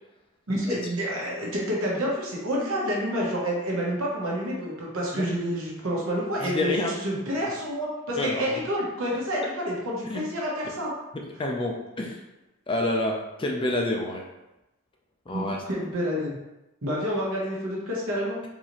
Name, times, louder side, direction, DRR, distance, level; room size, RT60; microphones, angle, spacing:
voice 1, 0.5-10.9 15.3-16.4 16.8-18.4, equal, 70° right, -3 dB, 1.0 m, -29 dB
voice 2, 6.4-6.9 8.2-8.6 10.1-10.2 11.4-12.2 12.7-14.2 15.3-15.6, left 2 dB, 25° left, 0 dB, 0.4 m, -28 dB
3.9 x 2.7 x 3.0 m, 0.97 s
head